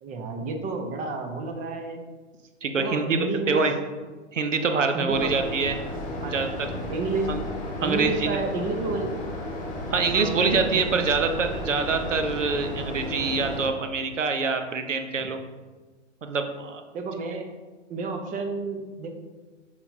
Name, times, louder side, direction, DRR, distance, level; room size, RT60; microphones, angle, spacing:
voice 1, 0.0-2.0 2.8-3.7 4.9-5.3 6.2-6.4 6.9-7.3 7.8-9.2 10.1-11.0 15.2-15.3 16.9-17.5 17.9-19.1, right 3 dB, 20° right, 5 dB, 0.7 m, -30 dB
voice 2, 2.6-3.7 4.3-5.7 6.3-6.5 7.3-7.4 7.8-8.4 9.9-15.4 16.2-16.8, right 4 dB, 75° right, 6 dB, 0.8 m, -25 dB
sound 1, 5.1-13.7, left 1 dB, 20° left, 1.6 m, -33 dB
8.1 x 5.2 x 2.7 m, 1.3 s
figure-of-eight pair, 105°, 37 cm